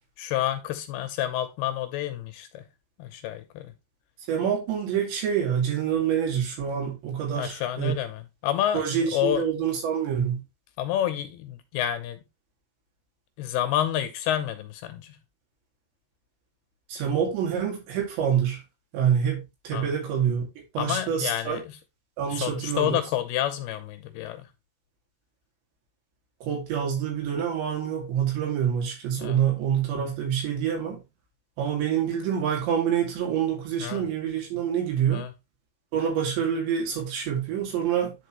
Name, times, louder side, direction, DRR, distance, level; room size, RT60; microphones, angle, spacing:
voice 1, 0.2-2.7 3.0-3.7 7.4-8.8 9.1-9.5 10.8-12.2 13.4-15.2 19.7-19.9 20.8-21.8 22.3-24.5 29.2-29.4 33.8-34.0 35.1-35.3, left 11 dB, 80° left, 2.6 m, -29 dB
voice 2, 4.3-7.9 8.7-10.4 16.9-18.6 18.9-20.4 20.7-21.6 22.2-22.9 26.4-31.0 31.6-35.3 35.9-38.1, right 8 dB, 85° right, 4.7 m, -26 dB
10.5 x 4.6 x 3.1 m
omnidirectional pair, 5.0 m